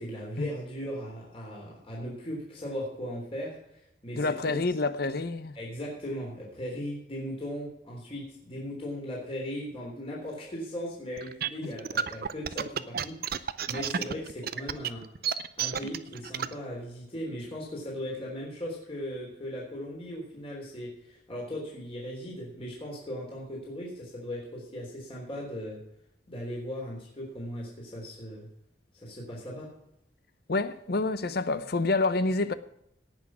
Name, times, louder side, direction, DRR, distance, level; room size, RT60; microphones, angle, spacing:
voice 1, 0.0-4.5 5.5-15.1 15.6-25.8 26.3-28.5 28.9-29.7, equal, 35° left, 3.5 m, -38 dB
voice 2, 4.2-5.5 11.6-11.7 30.5-32.5, left 3 dB, 60° left, 0.8 m, -28 dB
sound 1, 11.2-16.5, right 7 dB, 55° right, 0.6 m, -31 dB
18.0 x 6.2 x 6.1 m
head